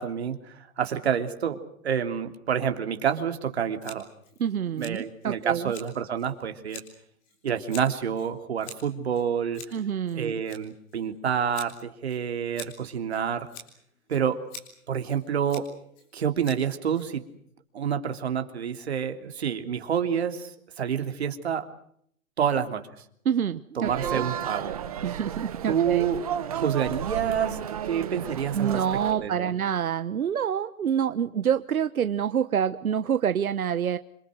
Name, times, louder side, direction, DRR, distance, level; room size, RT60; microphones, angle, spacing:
voice 1, 0.0-1.6 1.8-4.1 4.8-6.8 7.4-9.6 10.1-13.5 14.1-14.4 14.9-15.6 16.1-17.2 17.7-20.5 20.8-21.7 22.4-22.8 23.8-24.8 25.7-28.8 29.2-29.5, right 8 dB, 50° right, 7 dB, 3.2 m, -28 dB
Scissors, 3.8-17.5, left 3 dB, 15° left, 3.7 m, -48 dB
voice 2, 4.4-5.7 9.7-10.4 23.2-24.3 25.0-26.1 28.5-34.0, right 8 dB, 85° right, 11 dB, 1.3 m, -27 dB
sound 1, 23.8-29.1, right 9 dB, 25° right, 1.4 m, -33 dB
27.0 x 26.0 x 6.3 m, 0.67 s
hypercardioid pair, 180°, 42 cm